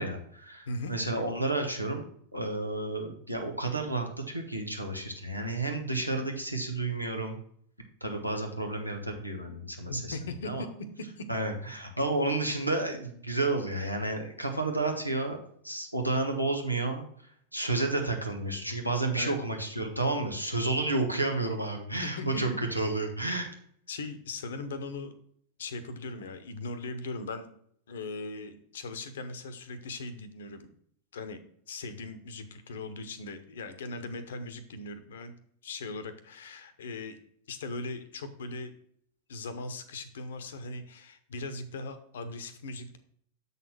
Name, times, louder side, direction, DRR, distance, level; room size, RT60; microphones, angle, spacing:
voice 1, 0.0-2.1 2.3-7.4 8.0-10.1 10.4-10.6 11.3-15.4 15.6-17.0 17.5-23.5, right 2 dB, 90° right, 3 dB, 1.3 m, -31 dB
voice 2, 9.9-10.9 11.2-11.3 19.1-19.4 22.0-22.6 23.9-25.1 25.6-27.5 27.9-30.7 31.1-31.4 31.7-35.3 35.6-37.2 37.5-38.7 39.3-43.0, left 2 dB, 60° left, 11 dB, 0.9 m, -39 dB
7.3 x 4.1 x 6.0 m, 0.64 s
figure-of-eight pair, 90°, 0 cm